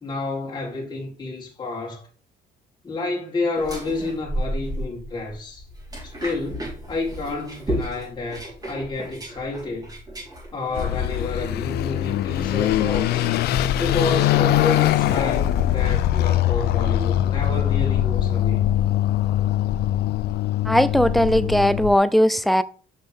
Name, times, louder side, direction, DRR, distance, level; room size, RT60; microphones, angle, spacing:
voice 1, 0.0-2.1 2.8-5.6 6.0-9.9 10.5-13.3 13.8-18.6, left 3 dB, 25° left, 2.1 m, -30 dB
sound 1, 3.5-12.2, right 1 dB, 25° right, 3.6 m, -33 dB
Car passing by / Accelerating revving vroom, 10.7-22.0, left 12 dB, 70° left, 0.5 m, -22 dB
voice 2, 20.7-22.6, equal, ahead, 0.4 m, -18 dB
6.2 x 5.6 x 3.4 m
cardioid pair, 110°, 17 cm